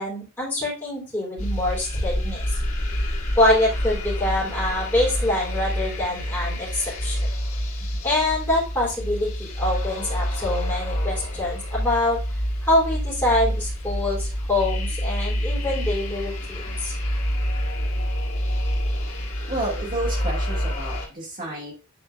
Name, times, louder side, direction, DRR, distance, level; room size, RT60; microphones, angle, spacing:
voice 1, 0.0-2.5 3.3-7.2 8.0-16.9, left 1 dB, 10° left, -8 dB, 3.3 m, -25 dB
sound 1, 1.4-21.1, equal, 75° left, 1.7 m, -27 dB
voice 2, 19.5-21.7, right 1 dB, 35° right, -4 dB, 2.2 m, -30 dB
8.5 x 4.5 x 2.5 m, 0.33 s
head